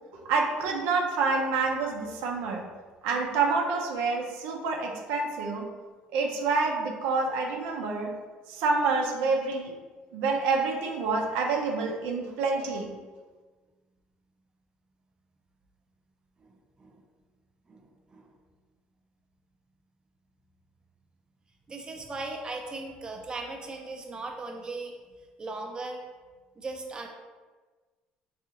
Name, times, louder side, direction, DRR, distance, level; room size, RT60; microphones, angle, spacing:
voice 1, 0.1-2.6 3.0-5.7 6.1-8.1 8.5-9.7 10.1-12.9, right 4 dB, 85° right, 1 dB, 0.5 m, -27 dB
voice 2, 16.4-17.0 17.7-18.3 21.7-24.9 25.4-26.0 26.6-27.1, right 3 dB, 25° right, 1 dB, 0.5 m, -38 dB
3.6 x 2.4 x 2.8 m, 1.4 s
cardioid pair, 100°, 3 cm